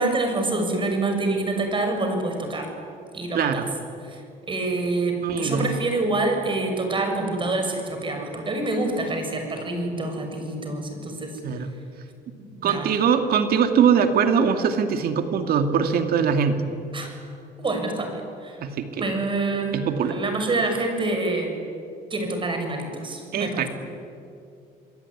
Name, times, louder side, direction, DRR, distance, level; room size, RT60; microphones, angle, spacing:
voice 1, 0.0-2.7 3.1-3.6 4.0-4.2 4.5-11.3 12.4-12.9 16.9-17.1 17.6-18.6 19.0-21.5 22.1-23.7, right 2 dB, 30° right, 4 dB, 6.8 m, -26 dB
voice 2, 3.3-3.7 5.2-5.7 11.4-11.7 12.6-16.6 18.6-19.1 19.7-20.2 23.3-23.7, right 7 dB, 65° right, 7 dB, 2.3 m, -22 dB
28.0 x 21.5 x 9.9 m, 2.5 s
cardioid pair, 110°, 17 cm